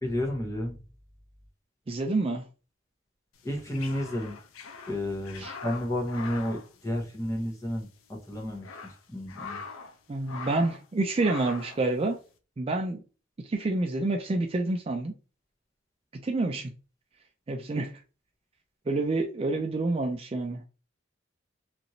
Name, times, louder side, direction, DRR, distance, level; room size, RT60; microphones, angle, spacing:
voice 1, 0.0-0.8 3.4-4.4 4.9-9.6, left 1 dB, 15° left, 0.8 m, -32 dB
voice 2, 1.9-2.4 5.4-5.5 10.1-12.2 12.6-13.0 13.4-15.1 16.2-16.7 17.5-17.9 18.9-20.7, right 2 dB, 30° right, 0.4 m, -28 dB
sound 1, 3.4-7.5 7.8-7.9 8.4-10.0 10.2-10.9 11.2-11.8, left 4 dB, 90° left, 0.4 m, -43 dB
3.0 x 2.5 x 2.7 m
head